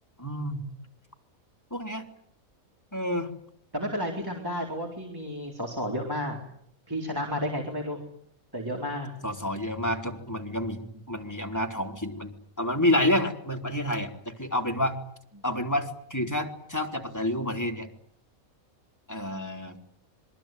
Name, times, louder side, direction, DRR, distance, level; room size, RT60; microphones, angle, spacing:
voice 1, 0.2-0.6 1.7-2.0 2.9-3.3 9.2-10.8 11.1-15.0 15.4-17.9 19.1-19.8, left 1 dB, 10° left, 2 dB, 3.6 m, -29 dB
voice 2, 3.7-6.4 6.9-8.0 8.5-9.1, equal, 15° right, 0 dB, 4.1 m, -32 dB
26.5 x 23.5 x 9.3 m, 0.68 s
omnidirectional pair, 1.5 m